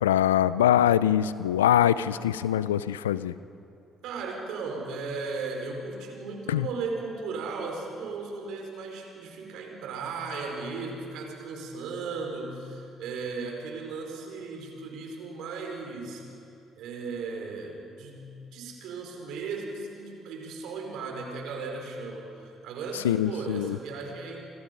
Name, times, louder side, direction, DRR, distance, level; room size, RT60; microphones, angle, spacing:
voice 1, 0.0-3.3 6.5-6.7 23.0-23.8, left 11 dB, 85° left, 17 dB, 0.5 m, -23 dB
voice 2, 4.0-16.2 16.8-24.4, right 4 dB, 70° right, 2 dB, 4.7 m, -36 dB
29.0 x 25.0 x 5.4 m, 2.6 s
hypercardioid pair, 50°, 0 cm